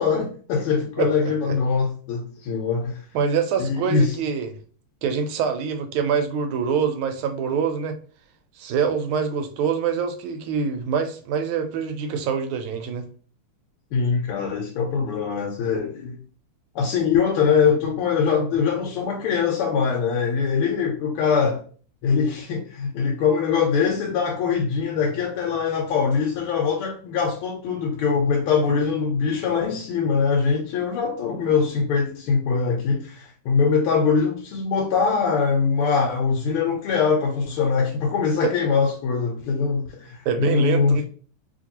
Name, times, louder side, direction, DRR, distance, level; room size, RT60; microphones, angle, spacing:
voice 1, 0.0-3.0 3.6-4.1 13.9-16.2 16.7-21.6 22.0-41.0, left 5 dB, 85° left, 1.5 m, -22 dB
voice 2, 3.1-4.6 5.0-8.0 8.6-13.1 38.4-38.5 40.3-41.0, right 6 dB, 80° right, 1.4 m, -25 dB
3.0 x 2.9 x 2.7 m
omnidirectional pair, 2.3 m